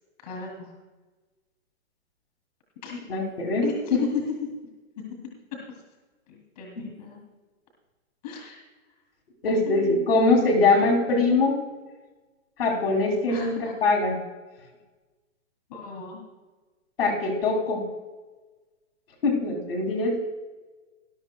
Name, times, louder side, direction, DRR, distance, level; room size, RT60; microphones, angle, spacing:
voice 1, 0.2-0.7 2.8-3.1 3.6-4.1 4.4-4.5 5.0-5.1 6.3-7.2 8.2-8.6 9.6-10.4 13.3-13.8 15.7-16.2, left 6 dB, 30° left, 0 dB, 2.6 m, -36 dB
voice 2, 3.1-3.6 3.9-4.0 6.8-6.9 9.4-11.6 12.6-14.2 17.0-17.8 19.2-20.2, left 3 dB, 45° left, 0 dB, 2.6 m, -22 dB
20.0 x 12.0 x 2.2 m, 1.2 s
hypercardioid pair, 175°, 40 cm